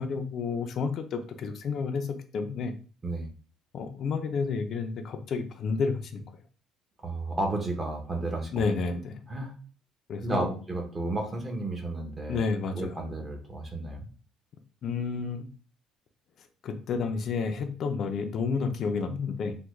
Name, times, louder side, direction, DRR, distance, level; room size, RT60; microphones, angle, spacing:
voice 1, 0.0-2.7 3.7-6.2 8.5-9.2 10.1-10.5 12.3-12.9 14.8-15.5 16.6-19.6, left 5 dB, 50° left, 6 dB, 0.4 m, -30 dB
voice 2, 7.0-8.5 9.3-9.5 10.2-12.4 12.7-14.1, right 2 dB, 20° right, 1 dB, 0.7 m, -32 dB
3.4 x 2.1 x 3.1 m, 0.40 s
cardioid pair, 145°, 0 cm